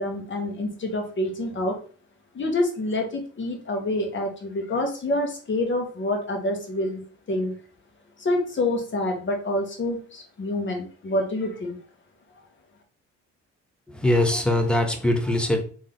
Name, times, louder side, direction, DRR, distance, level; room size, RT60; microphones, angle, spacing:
voice 1, 0.0-1.8 2.3-7.6 8.2-11.8, left 1 dB, 40° left, 2 dB, 1.4 m, -27 dB
voice 2, 13.9-15.6, left 1 dB, 5° left, 4 dB, 0.8 m, -22 dB
3.4 x 3.1 x 3.8 m, 0.41 s
cardioid pair, 90°, 30 cm